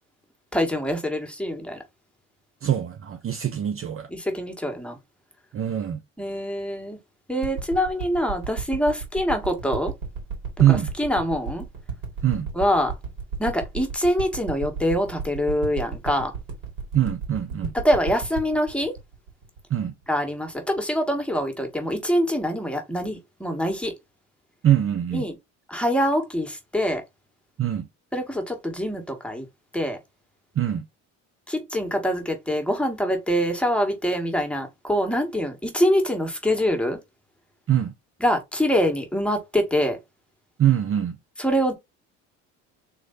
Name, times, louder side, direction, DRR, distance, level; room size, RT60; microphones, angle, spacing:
voice 1, 0.5-1.8 4.1-5.0 6.2-7.0 7.3-9.9 10.7-11.7 12.5-12.9 13.4-16.3 17.7-18.9 20.1-23.9 25.1-25.4 25.7-27.0 28.1-29.5 29.7-30.0 31.5-37.0 38.2-40.0 41.4-41.7, equal, 5° left, 1.9 m, -24 dB
voice 2, 2.6-4.1 5.5-6.0 10.6-10.9 12.2-12.5 16.9-17.7 19.7-19.9 24.6-25.2 27.6-27.9 30.6-30.9 37.7-37.9 40.6-41.2, right 11 dB, 35° right, 0.7 m, -22 dB
sound 1, 7.4-20.2 20.8-20.9, right 5 dB, 60° right, 2.8 m, -33 dB
3.9 x 3.1 x 4.1 m
hypercardioid pair, 75°, 38 cm